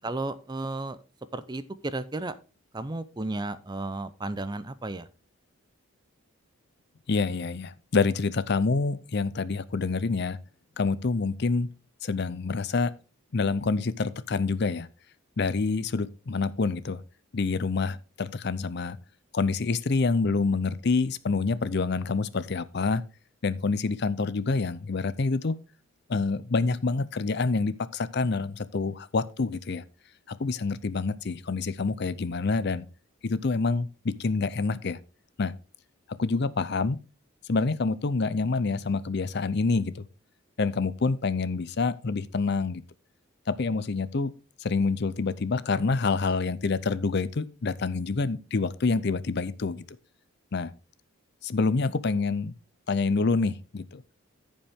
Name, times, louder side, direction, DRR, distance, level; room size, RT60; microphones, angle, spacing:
voice 1, 0.0-1.0 1.3-2.3 2.7-5.1, right 2 dB, 20° right, 0.5 m, -33 dB
voice 2, 7.1-10.4 10.8-11.7 12.0-12.9 13.3-14.9 15.4-17.0 17.3-19.0 19.3-23.0 23.4-25.6 26.1-29.8 30.4-32.9 33.2-35.0 35.4-35.5 36.2-37.0 37.5-40.0 40.6-42.8 43.5-44.3 44.6-49.8 50.5-50.7 51.4-52.5 52.9-54.0, left 4 dB, 50° left, 0.5 m, -27 dB
14.5 x 5.3 x 3.5 m
head